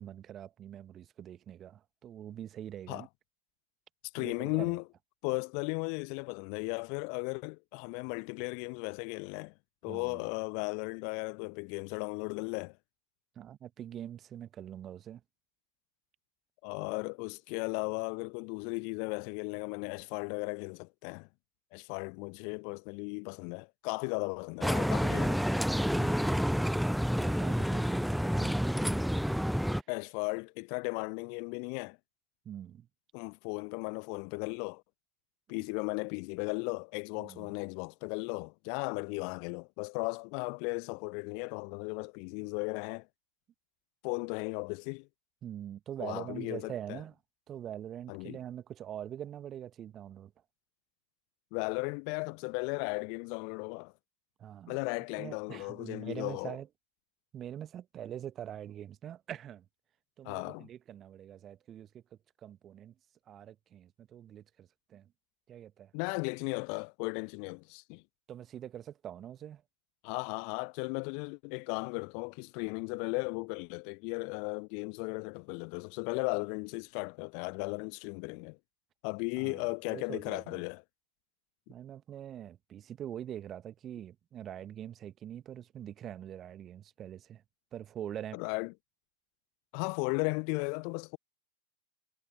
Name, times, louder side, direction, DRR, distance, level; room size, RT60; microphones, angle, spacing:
voice 1, 0.0-3.1 4.2-4.8 9.9-10.2 13.3-15.2 26.9-29.3 32.4-32.9 35.5-35.7 37.2-37.5 45.4-47.1 47.5-50.3 54.4-54.8 55.2-56.7 57.3-59.7 60.2-62.0 62.4-62.9 63.3-65.1 65.5-65.9 68.3-69.6 79.4-80.6 81.7-87.4 87.7-88.4, right 10 dB, 30° right, 1.4 m, -44 dB
voice 2, 4.1-4.8 5.2-9.5 9.8-12.8 16.6-21.3 21.7-25.4 29.9-32.0 33.1-34.8 35.5-43.1 44.0-45.1 46.0-47.0 48.1-48.4 51.5-53.9 54.7-56.6 60.2-60.7 65.9-68.0 70.0-78.6 79.0-80.8 88.3-88.7 89.7-91.2, left 40 dB or more, 45° left, 0.7 m, -36 dB
sound 1, 24.6-29.8, equal, ahead, 0.3 m, -29 dB
figure-of-eight pair, 90°, 0 cm